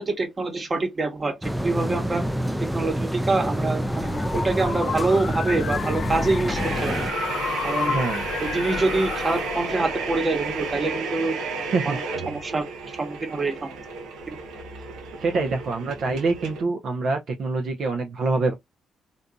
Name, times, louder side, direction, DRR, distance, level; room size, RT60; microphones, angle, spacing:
voice 1, 0.0-1.3 1.6-2.2 2.7-7.0 7.6-8.0 8.4-11.3 12.3-12.7 13.0-13.6 14.3-14.4, right 3 dB, 30° right, 1.2 m, -25 dB
sound 1, 1.4-7.1, equal, 5° right, 0.4 m, -27 dB
sound 2, 3.6-10.8, left 6 dB, 55° left, 0.7 m, -32 dB
sound 3, 6.5-16.6, right 4 dB, 90° right, 0.8 m, -32 dB
voice 2, 7.8-8.2 11.6-12.0 15.2-18.5, right 3 dB, 60° right, 0.7 m, -25 dB
3.8 x 2.6 x 2.3 m
cardioid pair, 90°, 0 cm